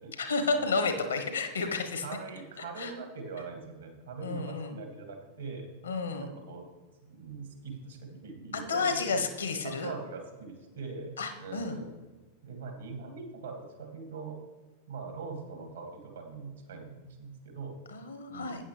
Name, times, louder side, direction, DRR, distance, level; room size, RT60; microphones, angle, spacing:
voice 1, 0.1-2.0 2.8-2.9 4.2-4.7 5.8-6.3 8.5-9.9 11.2-11.8 17.9-18.6, left 4 dB, 70° left, 7 dB, 1.2 m, -31 dB
voice 2, 2.0-5.7 6.2-6.7 7.0-9.3 9.6-11.9 12.4-14.4 14.9-17.8 18.3-18.6, right 4 dB, 70° right, 3 dB, 2.3 m, -42 dB
12.5 x 9.1 x 3.4 m, 1.3 s
figure-of-eight pair, 90°, 0 cm